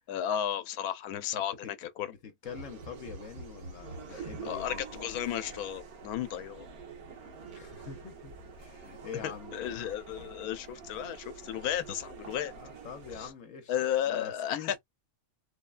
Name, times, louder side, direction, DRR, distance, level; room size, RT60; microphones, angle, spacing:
voice 1, 0.1-2.1 4.1-6.7 9.2-12.5 13.2-13.3 13.7-14.8, left 10 dB, 90° left, 1.1 m, -34 dB
voice 2, 1.3-5.0 7.5-9.9 12.5-13.7 14.0-14.8, left 7 dB, 65° left, 1.1 m, -45 dB
sound 1, 2.4-13.3, right 4 dB, 85° right, 1.4 m, -46 dB
3.3 x 2.2 x 2.4 m
omnidirectional pair, 1.5 m